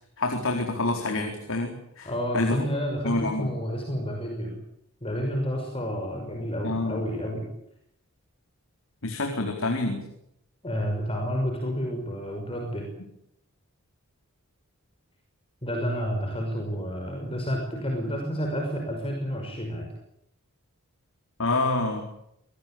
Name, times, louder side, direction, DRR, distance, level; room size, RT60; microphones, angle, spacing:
voice 1, 0.2-2.1 2.3-2.7 3.0-3.5 6.6-7.0 9.0-10.0 21.4-22.0, left 2 dB, 65° left, 3 dB, 4.3 m, -27 dB
voice 2, 2.0-4.6 5.0-7.5 10.6-12.8 15.6-19.9, equal, 25° left, 2 dB, 5.9 m, -30 dB
26.5 x 19.5 x 8.8 m, 0.77 s
head